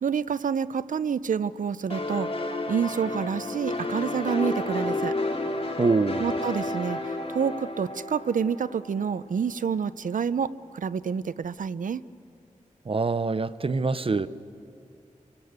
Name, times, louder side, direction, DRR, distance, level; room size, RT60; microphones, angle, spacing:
voice 1, 0.0-2.3 2.7-5.1 6.2-12.0, right 6 dB, 80° right, 0.6 m, -28 dB
sound 1, 1.9-9.4, left 2 dB, 45° left, 2.6 m, -31 dB
voice 2, 5.8-6.3 12.9-14.3, right 3 dB, 45° right, 0.8 m, -24 dB
28.0 x 23.5 x 8.1 m
wide cardioid pair, 85°, 13 cm